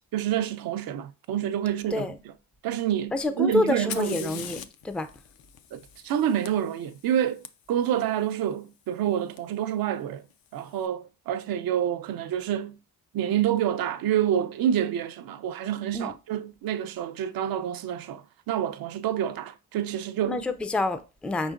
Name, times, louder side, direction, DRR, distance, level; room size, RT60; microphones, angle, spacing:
voice 1, 0.1-2.1 2.6-4.5 5.7-7.4 7.7-10.2 10.5-12.8 13.1-20.4, right 10 dB, 75° right, 0.5 m, -28 dB
voice 2, 3.1-5.1 15.9-16.1 20.2-21.5, left 2 dB, 5° left, 0.3 m, -28 dB
Fire, 3.7-7.5 9.4-9.5 10.3-10.7, left 9 dB, 75° left, 0.5 m, -42 dB
4.9 x 3.9 x 2.4 m
cardioid pair, 90°, 36 cm